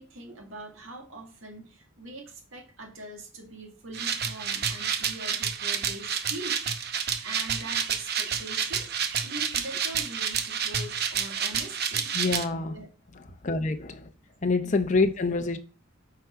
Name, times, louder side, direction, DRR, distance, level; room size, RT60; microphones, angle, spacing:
voice 1, 0.0-6.6 6.9-12.1 12.7-12.9 14.6-14.8, right 2 dB, 85° right, 2.0 m, -43 dB
sound 1, 3.9-12.4, right 7 dB, 55° right, 0.8 m, -29 dB
voice 2, 12.1-12.7 13.4-14.1 14.4-15.6, left 3 dB, 40° left, 0.6 m, -26 dB
8.3 x 4.8 x 4.4 m
head